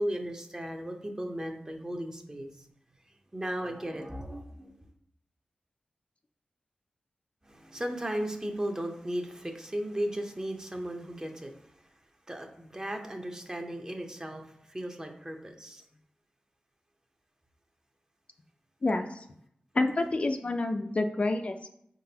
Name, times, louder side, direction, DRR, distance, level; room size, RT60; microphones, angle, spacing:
voice 1, 0.0-2.7 3.1-4.7 7.4-11.7 12.3-15.8, right 1 dB, 25° right, 3 dB, 0.7 m, -36 dB
voice 2, 18.8-19.2 19.7-21.7, left 2 dB, 45° left, 6 dB, 0.4 m, -28 dB
4.7 x 3.8 x 2.8 m, 0.72 s
cardioid pair, 50°, 3 cm